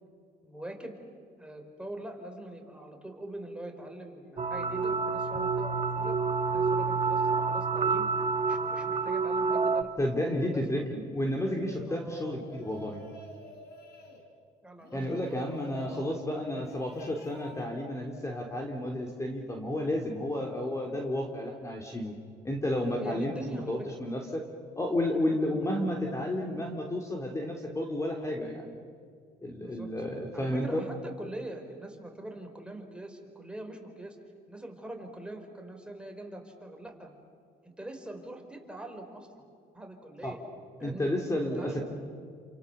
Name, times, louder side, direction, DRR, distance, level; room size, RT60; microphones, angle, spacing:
voice 1, 0.4-1.0 1.4-6.2 6.5-8.1 8.4-10.9 11.9-12.4 14.6-16.8 23.0-24.0 25.3-25.6 29.6-29.9 30.3-34.2 34.5-37.1 37.6-39.3 39.7-40.4 40.8-41.1 41.4-41.8, right 1 dB, 5° right, 3 dB, 4.4 m, -43 dB
sound 1, 4.4-9.8, right 4 dB, 35° right, 1.5 m, -28 dB
voice 2, 10.0-13.0 14.9-22.1 22.4-24.4 24.8-28.8 29.4-30.8 40.2-40.3 40.8-41.8, left 1 dB, 15° left, 1 dB, 3.3 m, -32 dB
sound 2, 11.2-11.9 12.4-14.2 14.8-16.1 16.5-17.7, left 1 dB, 75° left, 5.0 m, -50 dB
29.5 x 27.5 x 6.9 m, 2.2 s
cardioid pair, 110°, 17 cm